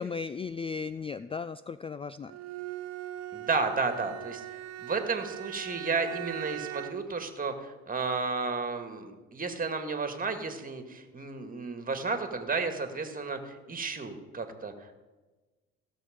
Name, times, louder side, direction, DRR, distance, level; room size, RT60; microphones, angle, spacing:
voice 1, 0.0-2.3, left 5 dB, 20° left, 14 dB, 0.3 m, -36 dB
Bowed string instrument, 2.3-7.1, right 13 dB, 60° right, 0.7 m, -40 dB
voice 2, 3.3-4.4 4.8-14.7, right 4 dB, 30° right, 7 dB, 2.0 m, -32 dB
16.0 x 6.7 x 5.2 m, 1.2 s
supercardioid pair, 65°, 29 cm